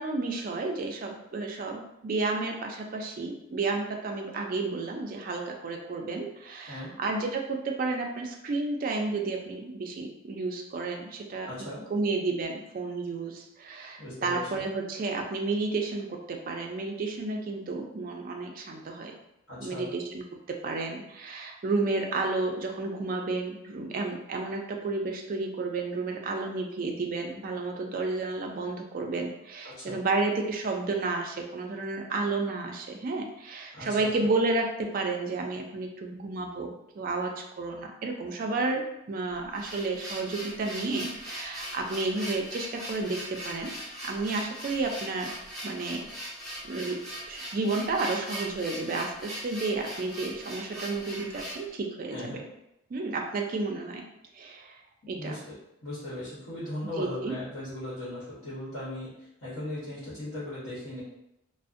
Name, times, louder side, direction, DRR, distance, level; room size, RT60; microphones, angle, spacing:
voice 1, 0.0-11.5 11.9-19.1 19.6-37.3 37.6-45.4 45.6-46.0 46.6-47.0 47.3-52.3 52.9-54.0 54.3-54.8 55.1-55.4 57.0-57.3, right 3 dB, 40° right, 2 dB, 0.3 m, -31 dB
voice 2, 11.4-11.8 14.0-14.7 19.5-19.9 29.6-30.0 33.7-34.1 52.1-52.4 55.0-55.5 55.8-61.0, left 1 dB, 80° left, -10 dB, 1.0 m, -38 dB
sound 1, 39.3-51.7, equal, ahead, 0.8 m, -40 dB
2.5 x 2.0 x 2.5 m, 0.86 s
head